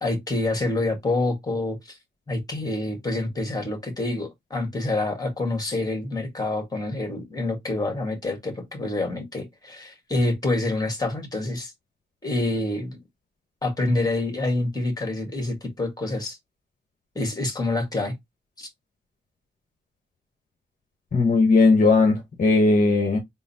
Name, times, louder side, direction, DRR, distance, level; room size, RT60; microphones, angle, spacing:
voice 1, 0.0-2.0 2.3-11.7 12.2-13.0 13.6-16.4 17.2-18.2 18.6-18.7, left 2 dB, 20° left, 1.7 m, -27 dB
voice 2, 21.1-23.2, left 3 dB, 45° left, 1.0 m, -18 dB
3.8 x 2.1 x 4.1 m
wide cardioid pair, 95°, 19 cm